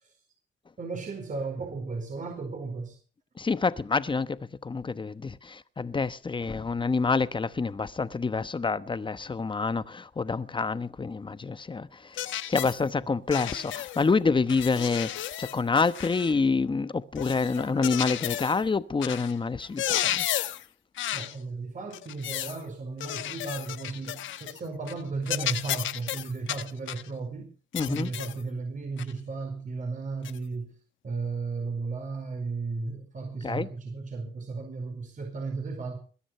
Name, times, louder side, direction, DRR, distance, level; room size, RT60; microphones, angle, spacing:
voice 1, 0.8-3.0 21.1-27.5 27.8-30.7 31.0-36.0, right 4 dB, 40° right, 4.6 m, -35 dB
voice 2, 3.4-11.9 12.5-15.1 15.4-20.2 27.7-28.1 33.4-33.7, left 4 dB, 25° left, 1.0 m, -27 dB
sound 1, 12.2-12.8 13.3-14.1 14.5-16.4 17.2-18.6 19.0-19.3 19.6-20.7 21.0-21.4 21.9-22.6 23.0-24.6 24.9-25.0 25.3-27.1 27.8-28.4 29.0-29.1 30.2-30.4, left 12 dB, 75° left, 1.1 m, -33 dB
22.0 x 10.0 x 5.7 m
cardioid pair, 90°, 20 cm